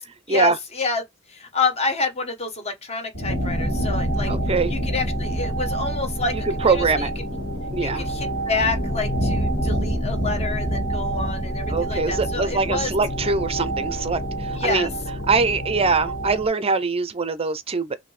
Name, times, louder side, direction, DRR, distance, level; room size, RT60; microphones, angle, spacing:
voice 1, 0.3-1.0 1.3-4.3 4.7-7.1 7.8-12.9 14.5-14.9, left 3 dB, 30° left, 1.0 m, -28 dB
sound 1, 3.1-16.5, right 1 dB, 45° left, 3.1 m, -27 dB
voice 2, 4.3-4.7 6.3-7.1 7.7-8.0 11.7-14.9 15.3-18.0, right 4 dB, 25° right, 0.5 m, -23 dB
5.9 x 2.7 x 3.2 m
head